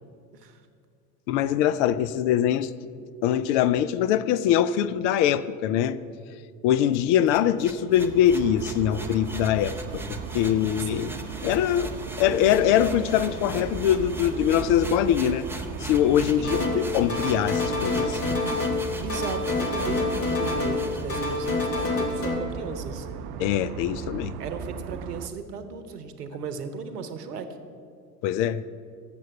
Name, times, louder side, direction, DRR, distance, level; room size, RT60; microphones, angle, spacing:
voice 1, 1.3-2.7 3.2-6.0 6.6-11.1 11.4-15.5 15.8-18.4 23.4-24.3 28.2-28.6, left 10 dB, 50° left, 15 dB, 0.4 m, -23 dB
sound 1, 6.9-21.9, right 1 dB, 5° right, 0.7 m, -40 dB
sound 2, 7.9-25.3, right 7 dB, 45° right, 0.5 m, -37 dB
voice 2, 10.8-11.2 16.4-17.0 19.0-23.1 24.4-27.6, right 5 dB, 80° right, 10 dB, 0.9 m, -36 dB
sound 3, 16.4-16.8 17.1-18.8 19.1-20.8 21.1-22.3, left 3 dB, 30° left, 1.9 m, -27 dB
7.6 x 6.8 x 6.9 m, 2.3 s
hypercardioid pair, 75°, 47 cm